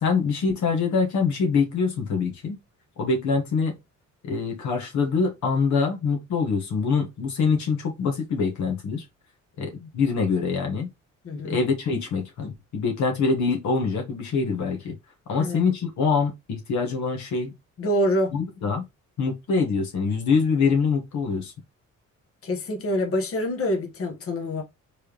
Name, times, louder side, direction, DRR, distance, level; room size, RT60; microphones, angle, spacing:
voice 1, 0.0-2.6 3.0-3.8 4.2-9.0 9.6-10.9 11.4-15.0 15.3-17.5 18.3-18.8 19.2-21.5, left 5 dB, 70° left, 1.4 m, -24 dB
voice 2, 11.2-11.6 15.3-15.6 17.8-18.3 22.4-24.6, equal, 50° left, 1.2 m, -26 dB
4.6 x 3.4 x 3.0 m
cardioid pair, 90°, 30 cm